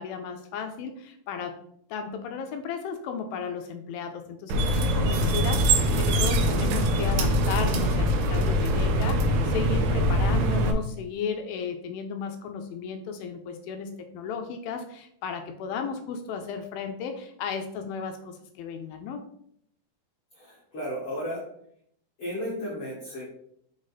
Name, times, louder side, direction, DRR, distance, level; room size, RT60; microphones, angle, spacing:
voice 1, 0.0-1.5 1.9-19.2, left 6 dB, 80° left, 5 dB, 2.2 m, -34 dB
sound 1, 4.5-10.7, equal, 80° right, 2.5 m, -23 dB
voice 2, 20.3-21.4 22.2-23.3, equal, 50° left, -6 dB, 1.8 m, -34 dB
6.1 x 3.8 x 4.0 m, 0.69 s
omnidirectional pair, 4.4 m